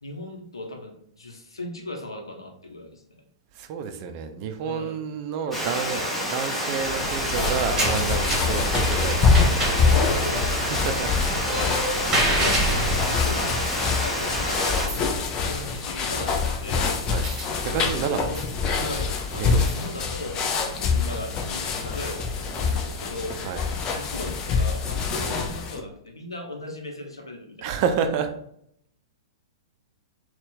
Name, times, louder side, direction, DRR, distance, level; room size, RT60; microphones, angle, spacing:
voice 1, 0.0-3.2 4.6-5.0 8.4-8.6 9.8-10.9 11.5-11.8 12.1-16.9 17.7-18.4 18.8-27.7, left 1 dB, 80° left, 3 dB, 0.8 m, -37 dB
voice 2, 3.5-9.6 10.6-11.2 17.1-17.3 17.6-18.2 19.3-19.7 23.4-23.6 25.1-25.2 27.6-28.3, right 6 dB, 40° right, 7 dB, 0.5 m, -29 dB
Water, 5.5-14.9, equal, 10° left, 0.9 m, -29 dB
sound 1, 6.8-25.8, left 5 dB, 30° left, 0.6 m, -26 dB
sound 2, 7.0-25.2, right 1 dB, 20° right, 1.5 m, -32 dB
4.0 x 2.4 x 3.7 m, 0.72 s
figure-of-eight pair, 105°, 2 cm